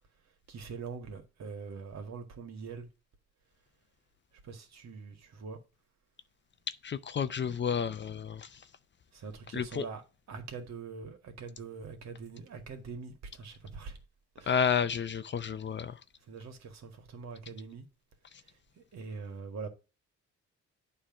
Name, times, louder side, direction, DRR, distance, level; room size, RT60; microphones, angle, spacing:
voice 1, 0.5-2.9 4.4-5.6 9.1-10.0 10.3-14.0 14.4-14.6 16.3-17.9 18.8-19.7, right 5 dB, 60° right, 2.0 m, -43 dB
voice 2, 6.8-8.6 9.5-9.9 14.5-16.0, left 7 dB, 40° left, 0.6 m, -31 dB
8.8 x 3.3 x 6.1 m
cardioid pair, 90°, 30 cm